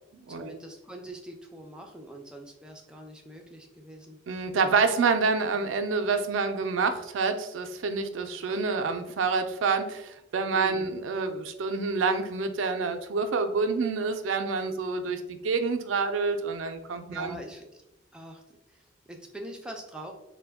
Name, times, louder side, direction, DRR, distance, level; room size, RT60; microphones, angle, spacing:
voice 1, 0.3-4.2 10.5-10.9 17.1-17.8 18.1-20.1, right 1 dB, 5° right, 1 dB, 0.4 m, -43 dB
voice 2, 4.3-17.4, right 4 dB, 85° right, 7 dB, 0.4 m, -27 dB
4.1 x 2.2 x 3.4 m, 0.90 s
head